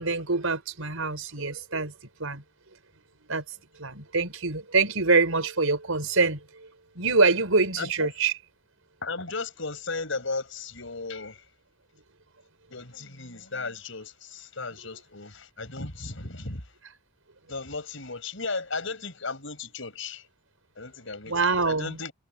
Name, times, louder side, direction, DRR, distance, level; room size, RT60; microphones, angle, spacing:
voice 1, 0.0-1.9 2.2-2.4 3.3-3.4 3.8-6.7 7.0-8.3 21.3-22.0, right 3 dB, 85° right, 5.4 m, -25 dB
voice 2, 7.8-8.1 9.0-11.4 12.7-16.6 17.5-20.3 20.8-22.1, left 3 dB, 70° left, 5.3 m, -35 dB
head